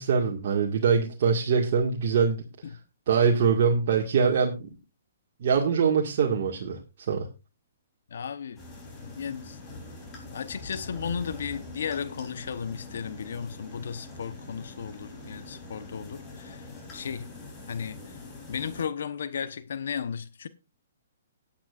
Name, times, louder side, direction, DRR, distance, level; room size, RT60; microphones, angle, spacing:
voice 1, 0.0-2.4 3.1-4.7 5.4-6.8 7.1-7.3, right 6 dB, 55° right, 1.8 m, -23 dB
voice 2, 8.1-8.6 9.0-9.6 10.3-17.3 17.7-18.2 18.5-20.5, left 7 dB, 70° left, 1.0 m, -35 dB
sound 1, 8.6-18.8, left 2 dB, 20° left, 3.7 m, -44 dB
18.0 x 8.8 x 2.5 m
hypercardioid pair, 150°, 0 cm